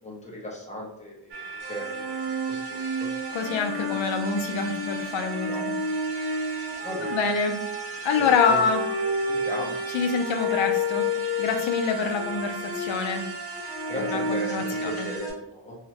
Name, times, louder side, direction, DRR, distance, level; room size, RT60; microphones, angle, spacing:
voice 1, 0.0-3.1 5.5-5.6 6.8-7.2 8.1-8.6 9.3-9.8 13.9-15.8, equal, 15° left, -3 dB, 0.5 m, -36 dB
sound 1, 1.3-15.2, right 4 dB, 60° right, 0.5 m, -38 dB
sound 2, 1.6-15.3, left 1 dB, 75° right, 1.1 m, -31 dB
voice 2, 3.3-5.7 7.0-7.6 8.0-8.8 9.9-11.1 11.4-13.3 14.0-15.1, left 5 dB, 75° left, 5 dB, 0.5 m, -26 dB
2.8 x 2.1 x 2.8 m, 0.75 s
wide cardioid pair, 175°, 47 cm